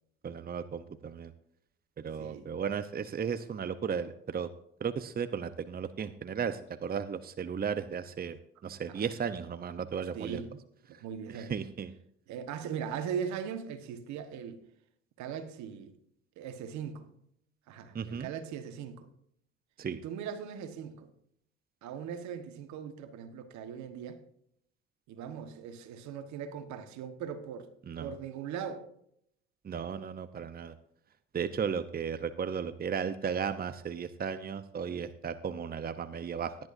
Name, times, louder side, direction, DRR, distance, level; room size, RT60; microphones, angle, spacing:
voice 1, 0.2-1.3 2.0-4.5 4.8-10.4 10.9-11.0 11.3-11.9 17.9-18.3 19.8-20.0 27.9-28.1 29.6-30.7 31.3-36.6, right 7 dB, 30° right, 0.8 m, -35 dB
voice 2, 2.2-2.5 8.9-9.0 10.1-10.5 11.0-11.6 12.3-14.6 15.2-15.9 16.4-17.1 17.7-19.1 20.0-21.1 21.8-24.2 25.1-27.7 28.0-28.8, right 7 dB, 70° right, 1.5 m, -39 dB
16.5 x 10.5 x 2.7 m
supercardioid pair, 65°, 29 cm